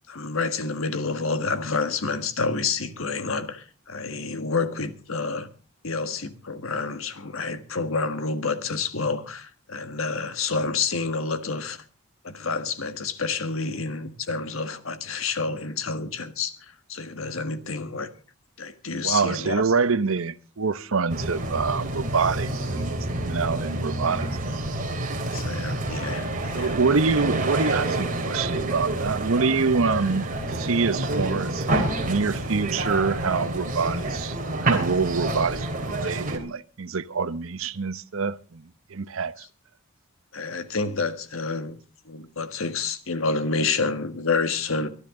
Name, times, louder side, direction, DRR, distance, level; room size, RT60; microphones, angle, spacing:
voice 1, 0.1-5.5 5.8-11.8 12.2-18.1 18.6-19.6 25.2-26.7 40.3-41.8 42.0-44.9, left 4 dB, 70° left, 1.5 m, -29 dB
voice 2, 18.9-24.3 26.5-39.4, right 4 dB, 70° right, 0.8 m, -26 dB
sound 1, 21.1-36.4, right 2 dB, 40° right, 3.3 m, -28 dB
23.0 x 13.0 x 3.8 m
head